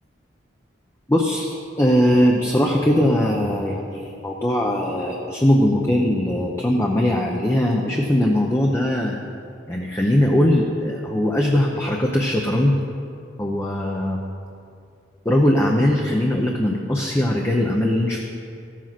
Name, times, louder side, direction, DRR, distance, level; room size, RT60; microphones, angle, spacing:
voice 1, 1.1-9.2 9.7-12.8 13.4-14.2 15.2-18.2, left 1 dB, 15° left, 0 dB, 0.7 m, -20 dB
14.5 x 7.4 x 5.9 m, 2.4 s
head